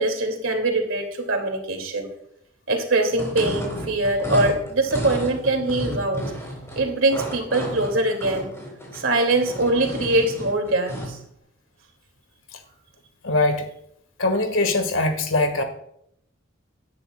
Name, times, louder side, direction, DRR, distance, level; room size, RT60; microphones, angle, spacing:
voice 1, 0.0-2.1 2.7-6.3 6.8-8.5 8.9-11.2, right 2 dB, 85° right, 3 dB, 2.4 m, -23 dB
sound 1, 3.1-11.2, equal, 15° left, 3.6 m, -32 dB
voice 2, 13.2-13.7 14.2-15.6, left 2 dB, 85° left, 6 dB, 1.6 m, -21 dB
17.0 x 10.5 x 2.3 m, 0.74 s
head